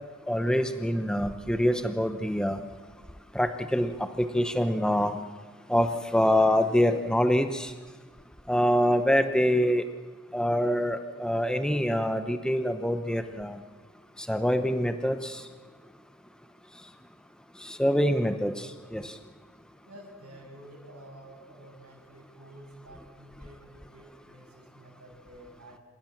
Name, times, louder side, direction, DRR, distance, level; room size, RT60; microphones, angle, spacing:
voice 1, 0.3-2.6 3.3-5.2 5.7-7.7 8.5-9.8 10.3-13.6 14.2-15.4 17.6-19.1, equal, 5° left, 9 dB, 0.8 m, -25 dB
voice 2, 19.8-25.8, right 1 dB, 85° right, -3 dB, 7.5 m, -50 dB
28.0 x 16.5 x 7.4 m, 1.4 s
head